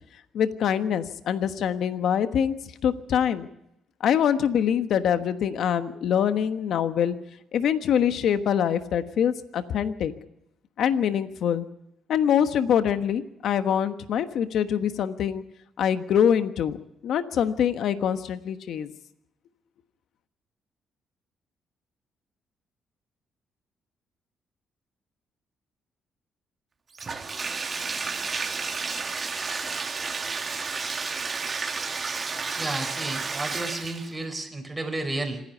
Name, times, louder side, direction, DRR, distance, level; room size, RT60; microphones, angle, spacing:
voice 1, 0.3-2.5 2.8-3.5 4.0-7.1 7.5-10.1 10.8-11.6 12.1-15.4 15.8-16.8 17.0-18.9, left 8 dB, 70° left, 10 dB, 1.2 m, -24 dB
Bathtub (filling or washing), 26.9-34.2, right 4 dB, 35° right, 2.1 m, -31 dB
voice 2, 32.6-35.4, right 2 dB, 15° right, 4 dB, 4.6 m, -32 dB
26.5 x 10.5 x 9.4 m, 0.81 s
cardioid pair, 90°, 0 cm